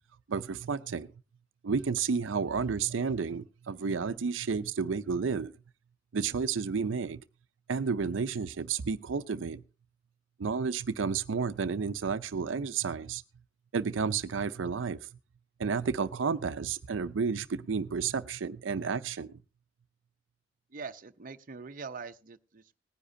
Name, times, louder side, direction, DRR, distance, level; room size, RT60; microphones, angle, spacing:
voice 1, 0.3-1.1 1.6-5.5 6.1-7.2 7.7-9.6 10.4-13.2 13.7-15.0 15.6-19.3, right 5 dB, 90° right, 0.5 m, -31 dB
voice 2, 20.7-22.8, right 5 dB, 45° right, 0.6 m, -43 dB
19.0 x 10.0 x 2.7 m
head